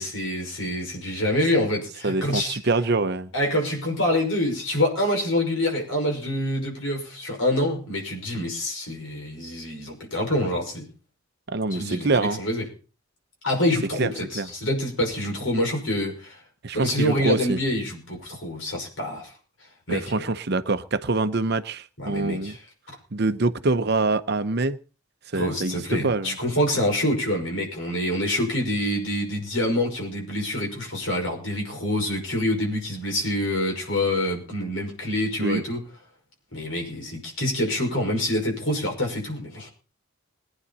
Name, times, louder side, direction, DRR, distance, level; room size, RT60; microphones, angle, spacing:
voice 1, 0.0-2.6 3.3-10.9 11.7-12.6 13.4-16.4 16.7-19.3 19.9-20.3 22.0-22.6 25.3-35.8 36.5-39.7, left 1 dB, 65° left, 5.7 m, -26 dB
voice 2, 2.0-3.3 11.5-12.4 14.0-14.1 14.3-14.5 16.6-17.6 19.9-22.6 23.1-24.8 25.3-26.4 35.4-35.6, right 3 dB, 50° right, 0.8 m, -25 dB
21.5 x 9.9 x 4.2 m
head